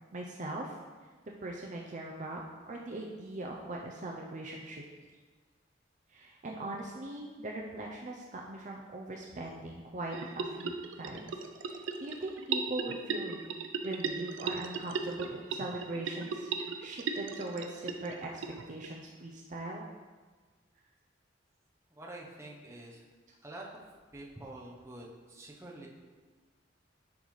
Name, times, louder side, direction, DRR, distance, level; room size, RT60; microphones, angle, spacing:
voice 1, 0.1-0.8 1.4-2.4 2.7-4.8 6.1-11.4 11.6-13.4 13.8-18.4 18.7-19.8, right 2 dB, 40° right, -1 dB, 0.5 m, -40 dB
sound 1, 10.1-18.9, right 4 dB, 90° right, 0.5 m, -37 dB
voice 2, 22.0-23.0 23.4-23.7 24.1-25.9, right 1 dB, 15° right, -3 dB, 0.9 m, -47 dB
10.5 x 4.0 x 3.2 m, 1.4 s
head